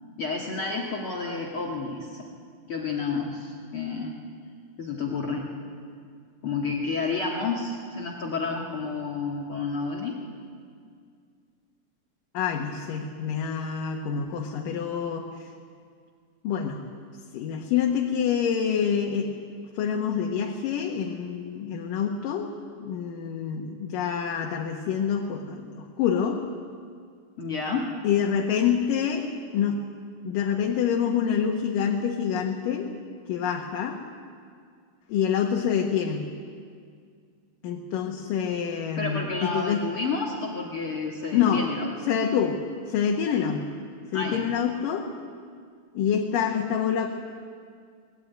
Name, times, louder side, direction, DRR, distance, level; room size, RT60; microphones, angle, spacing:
voice 1, 0.2-2.2 2.7-4.2 4.8-5.5 6.4-10.2 27.4-27.9 39.0-41.9 44.1-44.5, left 4 dB, 45° left, -1 dB, 2.6 m, -30 dB
voice 2, 12.3-15.5 16.4-16.8 17.3-19.3 19.8-22.5 22.8-26.4 28.0-29.3 29.5-29.8 30.2-32.9 33.3-34.0 35.1-36.3 37.6-39.8 41.3-41.7 42.1-42.6 42.9-43.7 44.1-45.1 45.9-47.1, left 8 dB, 80° left, 1 dB, 3.0 m, -26 dB
24.5 x 20.0 x 9.4 m, 2.2 s
omnidirectional pair, 3.9 m